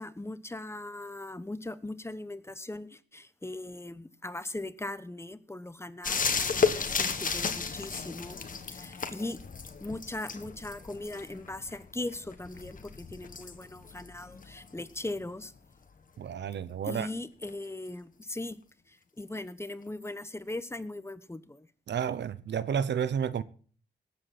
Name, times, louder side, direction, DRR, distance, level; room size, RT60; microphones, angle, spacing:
voice 1, 0.0-8.4 8.7-9.4 9.8-15.5 16.8-18.6 18.9-21.7, left 2 dB, 15° left, 0.9 m, -39 dB
sound 1, 6.0-15.4 17.5-17.6, left 5 dB, 50° left, 1.5 m, -34 dB
voice 2, 16.2-17.1 21.9-23.4, right 8 dB, 75° right, 0.8 m, -31 dB
19.0 x 8.2 x 4.2 m
cardioid pair, 85°, 18 cm